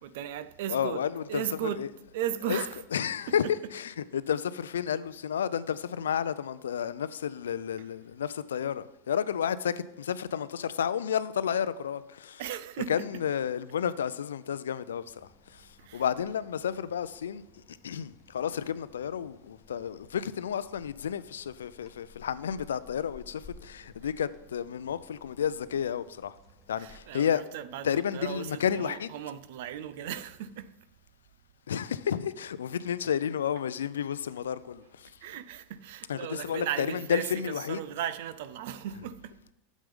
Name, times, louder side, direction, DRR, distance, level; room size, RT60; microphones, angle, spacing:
voice 1, 0.0-1.0 1.3-2.9 3.3-3.8 7.8-8.0 12.4-13.3 15.8-16.1 24.0-24.1 26.7-30.7 35.2-39.4, right 10 dB, 70° right, 0.6 m, -37 dB
voice 2, 0.7-1.4 1.8-1.9 2.5-2.6 2.9-3.5 3.7-12.4 12.9-17.4 17.7-26.4 26.7-27.4 27.8-29.1 31.7-35.1 36.1-37.8, left 8 dB, 85° left, 0.4 m, -31 dB
sound 1, 15.1-27.0, left 3 dB, 20° left, 1.5 m, -57 dB
8.9 x 7.3 x 3.6 m
hypercardioid pair, 100°, 0 cm